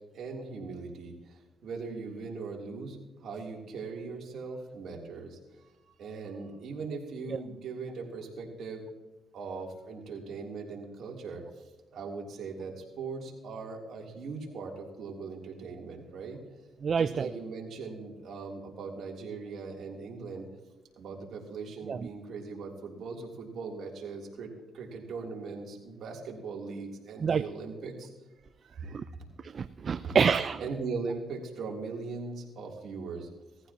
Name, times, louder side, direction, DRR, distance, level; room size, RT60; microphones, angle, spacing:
voice 1, 0.1-5.7 6.0-8.9 9.3-11.6 11.9-16.4 16.9-20.5 21.0-28.1 28.6-29.1 30.0-30.2 30.6-33.3, right 4 dB, 65° right, -1 dB, 3.2 m, -40 dB
voice 2, 16.8-17.3 21.9-22.1 27.2-27.4 28.9-29.0 29.4-30.6, right 6 dB, 45° right, 12 dB, 0.4 m, -27 dB
19.0 x 14.5 x 3.0 m, 1.1 s
cardioid pair, 90°, 0 cm